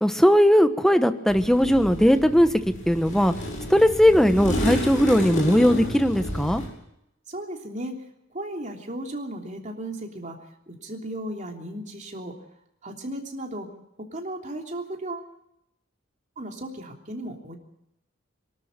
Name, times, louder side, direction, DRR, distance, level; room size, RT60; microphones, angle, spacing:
voice 1, 0.0-2.5 2.9-3.3 3.7-6.6, equal, ahead, 9 dB, 1.1 m, -18 dB
sound 1, 1.3-6.7, equal, 40° left, 7.0 m, -31 dB
voice 2, 7.3-7.9 8.3-10.4 10.7-12.3 12.8-13.7 14.1-15.3 16.4-17.6, right 1 dB, 35° right, 2 dB, 3.2 m, -35 dB
24.0 x 13.0 x 9.0 m, 0.81 s
head